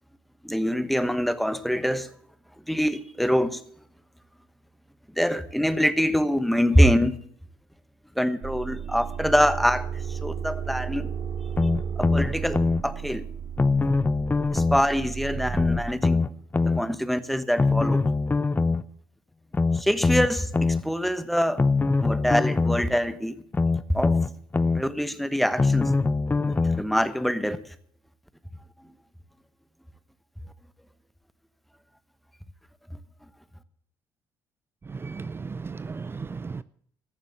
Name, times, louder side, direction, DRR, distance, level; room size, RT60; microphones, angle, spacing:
voice 1, 0.4-2.1 2.7-3.6 5.2-7.2 8.2-11.1 12.0-13.2 14.5-16.3 16.7-18.0 19.7-21.6 22.0-23.4 23.9-24.2 24.7-25.9 26.4-27.6, equal, ahead, 1.1 m, -24 dB
sound 1, 8.4-15.9, right 7 dB, 45° right, 0.9 m, -34 dB
sound 2, 11.6-12.8 13.6-14.8 15.5-16.8 17.6-18.8 19.5-20.8 21.6-22.8 23.5-24.8 25.6-26.8 27.5-27.6, left 3 dB, 20° left, 0.7 m, -23 dB
voice 2, 34.9-36.6, right 4 dB, 25° right, 0.4 m, -35 dB
14.5 x 7.3 x 8.4 m
supercardioid pair, 75°, 9 cm